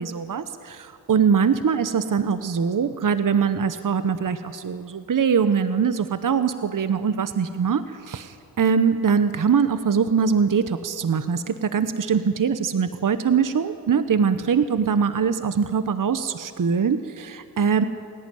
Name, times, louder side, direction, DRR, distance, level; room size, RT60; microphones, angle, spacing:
voice 1, 0.0-17.8, right 6 dB, 55° right, 11 dB, 1.0 m, -22 dB
29.0 x 11.5 x 9.3 m, 2.3 s
cardioid pair, 50°, 39 cm